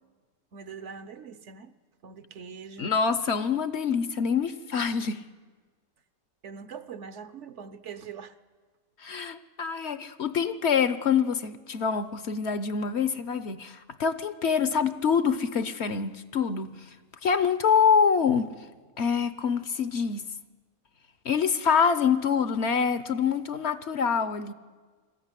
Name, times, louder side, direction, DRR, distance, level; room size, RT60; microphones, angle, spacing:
voice 1, 0.5-1.7 2.0-2.9 6.4-8.3, right 6 dB, 60° right, 13 dB, 1.0 m, -42 dB
voice 2, 2.8-5.2 9.0-16.9 17.2-18.5 19.0-20.3 21.2-24.5, left 6 dB, 55° left, 13 dB, 1.0 m, -25 dB
20.5 x 14.0 x 9.8 m, 1.4 s
omnidirectional pair, 1.5 m